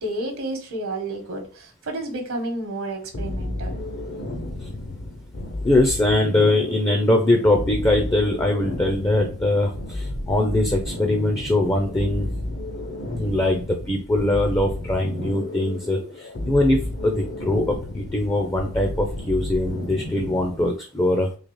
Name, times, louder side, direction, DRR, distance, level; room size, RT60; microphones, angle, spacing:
voice 1, 0.0-3.8, right 1 dB, 70° right, 4 dB, 1.0 m, -30 dB
sound 1, 3.1-20.7, left 1 dB, 55° left, 0.7 m, -32 dB
voice 2, 5.6-12.3 13.1-21.3, left 1 dB, 15° left, 3 dB, 0.4 m, -22 dB
3.9 x 2.8 x 3.1 m, 0.39 s
head